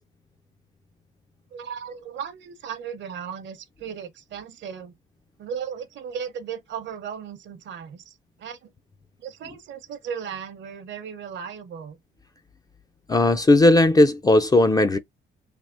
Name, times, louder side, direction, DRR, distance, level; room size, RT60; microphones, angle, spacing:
voice 1, 1.5-4.9 5.4-8.7 9.2-12.0, right 7 dB, 65° right, 0.8 m, -36 dB
voice 2, 13.1-15.0, left 2 dB, 20° left, 0.4 m, -17 dB
3.4 x 2.4 x 2.5 m
cardioid pair, 90°, 20 cm